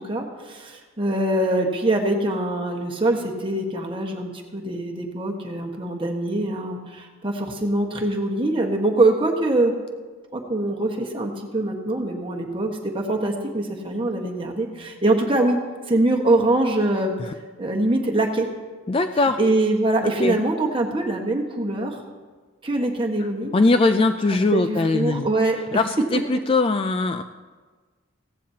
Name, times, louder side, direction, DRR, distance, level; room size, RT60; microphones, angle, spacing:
voice 1, 0.0-9.7 10.3-15.6 15.9-17.1 17.6-18.5 19.4-22.0 22.6-23.5 24.0-24.1 24.5-25.8 26.1-26.2, right 2 dB, 25° right, 1 dB, 1.3 m, -23 dB
voice 2, 18.9-19.4 20.0-20.4 23.5-25.3 25.7-27.2, left 3 dB, 25° left, 8 dB, 0.3 m, -21 dB
16.5 x 15.0 x 2.8 m, 1.4 s
head